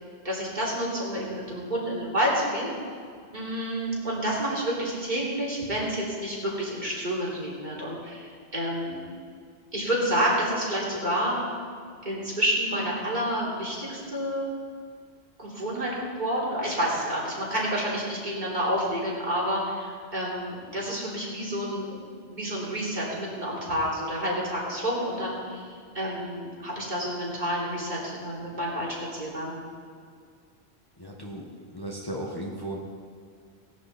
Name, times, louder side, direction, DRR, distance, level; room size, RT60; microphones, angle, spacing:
voice 1, 0.2-2.7 3.3-9.0 9.7-11.4 12.0-14.5 15.4-22.0 22.3-25.7 25.9-29.6, equal, 45° right, -5 dB, 3.5 m, -29 dB
voice 2, 31.0-32.8, right 1 dB, 20° left, -2 dB, 1.4 m, -36 dB
17.5 x 11.0 x 4.3 m, 2.2 s
omnidirectional pair, 1.1 m